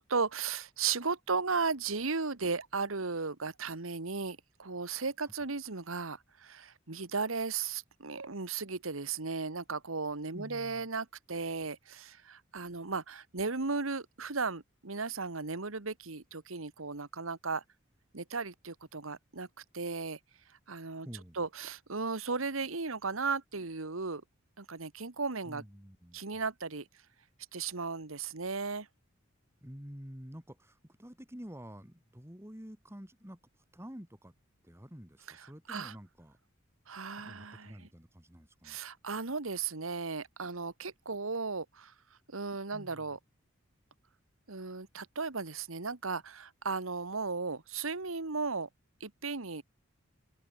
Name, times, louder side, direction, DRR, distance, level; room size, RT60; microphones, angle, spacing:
voice 1, 0.0-17.6 18.1-20.2 20.7-21.1 21.3-24.2 24.6-25.6 26.1-26.8 27.5-28.9 35.4-35.9 36.9-37.9 38.6-41.9 42.3-43.2 44.5-48.7 49.0-49.6, right 4 dB, 85° right, 1.7 m, -36 dB
voice 2, 10.3-10.9 21.0-21.4 25.4-26.4 29.6-33.4 33.7-34.3 34.6-36.4 37.2-38.8 42.7-43.2, equal, 15° right, 3.2 m, -49 dB
head